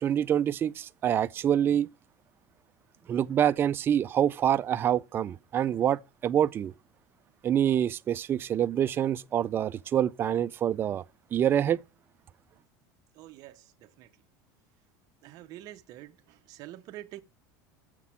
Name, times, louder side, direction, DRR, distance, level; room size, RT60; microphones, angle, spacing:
voice 1, 0.0-1.9 3.1-6.7 7.4-11.0 11.3-11.8, right 10 dB, 25° right, 0.4 m, -26 dB
voice 2, 13.1-14.1 15.2-17.2, right 14 dB, 50° right, 0.7 m, -46 dB
6.8 x 5.9 x 7.2 m
supercardioid pair, 140°, 8 cm